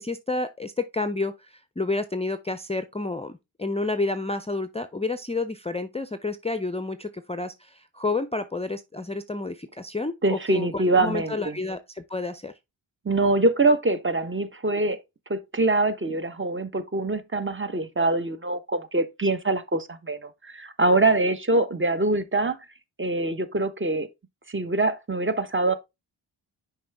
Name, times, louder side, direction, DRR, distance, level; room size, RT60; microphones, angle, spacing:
voice 1, 0.0-12.5, left 3 dB, 15° left, 0.5 m, -30 dB
voice 2, 10.2-11.6 13.0-15.0 15.3-22.6 23.0-24.1 24.5-25.7, right 2 dB, 25° right, 1.0 m, -24 dB
6.1 x 4.8 x 3.4 m
cardioid pair, 55°, 48 cm